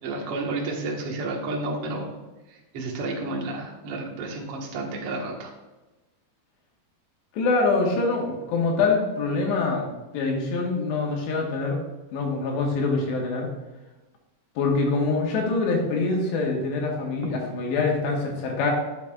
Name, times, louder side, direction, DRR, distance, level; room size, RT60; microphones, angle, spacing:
voice 1, 0.0-2.2 2.5-5.5, right 2 dB, 60° right, -1 dB, 1.6 m, -31 dB
voice 2, 7.3-9.9 10.1-11.8 12.1-13.5 14.6-18.7, left 3 dB, 85° left, 0 dB, 3.7 m, -24 dB
12.5 x 8.3 x 2.5 m, 1.1 s
omnidirectional pair, 4.9 m